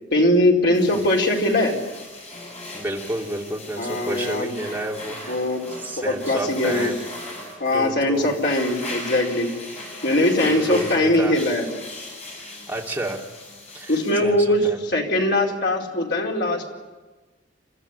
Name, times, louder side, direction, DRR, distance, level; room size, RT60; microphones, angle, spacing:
voice 1, 0.1-1.7 3.8-4.5 5.3-5.6 6.0-6.9 7.6-9.5 10.0-11.6 13.9-16.7, left 1 dB, 60° left, -1 dB, 4.5 m, -21 dB
sound 1, 0.7-14.1, left 2 dB, 35° left, 7.1 m, -38 dB
voice 2, 2.7-5.4 5.7-7.0 7.7-8.5 10.4-11.4 12.4-13.2 13.7-14.8, right 1 dB, 10° right, -2 dB, 2.8 m, -31 dB
29.5 x 13.5 x 10.0 m, 1.2 s
head